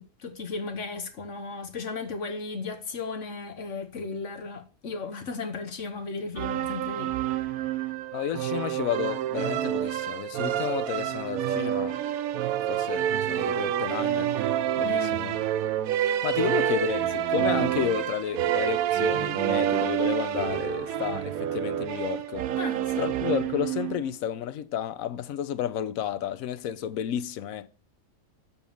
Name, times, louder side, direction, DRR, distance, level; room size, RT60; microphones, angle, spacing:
voice 1, 0.0-7.1 7.4-7.5 14.8-15.2 22.6-23.1, left 4 dB, 60° left, 1.2 m, -35 dB
sound 1, 6.4-24.1, right 11 dB, 90° right, 1.1 m, -28 dB
voice 2, 8.1-12.0 12.7-14.4 14.8-15.3 16.0-22.4 23.0-27.7, left 10 dB, 80° left, 1.1 m, -31 dB
7.1 x 4.4 x 6.8 m
omnidirectional pair, 1.4 m